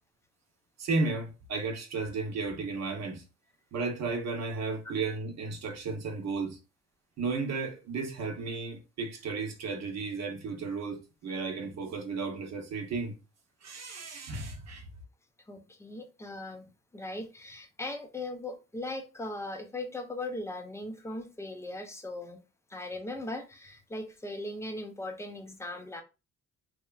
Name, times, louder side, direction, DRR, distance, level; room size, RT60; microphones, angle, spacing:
voice 1, 0.8-3.2 3.7-6.6 7.2-13.2 13.6-14.9, right 4 dB, 60° right, 0.8 m, -34 dB
voice 2, 15.5-22.4 22.7-26.0, left 2 dB, 10° left, 0.5 m, -39 dB
3.0 x 2.1 x 2.3 m
cardioid pair, 90°, 30 cm